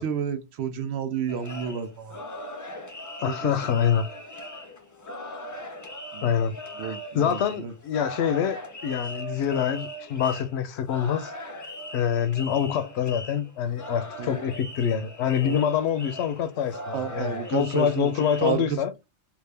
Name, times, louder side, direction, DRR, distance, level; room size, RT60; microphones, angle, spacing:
voice 1, 0.0-2.2 3.3-3.5 3.8-3.9 6.1-6.3 6.8-7.7 14.2-14.4 15.4-15.6 16.9-18.8, right 8 dB, 75° right, 0.9 m, -31 dB
sound 1, 1.3-18.5, left 1 dB, 25° left, 0.4 m, -39 dB
voice 2, 3.2-4.1 5.4-5.6 6.2-8.6 8.8-11.6 11.9-18.9, left 8 dB, 75° left, 0.8 m, -26 dB
3.5 x 2.4 x 3.3 m
omnidirectional pair, 1.1 m